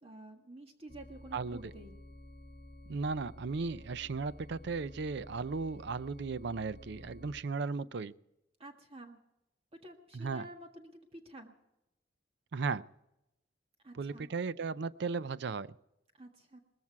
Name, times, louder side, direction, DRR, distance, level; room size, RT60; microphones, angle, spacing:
voice 1, 0.0-2.0 8.6-9.2 9.8-11.5 13.8-14.3 16.2-16.6, right 1 dB, 30° right, 3 dB, 1.6 m, -50 dB
sound 1, 0.9-7.4, left 1 dB, 40° left, 1.7 m, -52 dB
voice 2, 1.3-1.7 2.9-8.1 10.1-10.5 12.5-12.8 13.9-15.7, right 4 dB, 65° right, 16 dB, 0.5 m, -36 dB
19.5 x 14.5 x 4.7 m, 0.89 s
head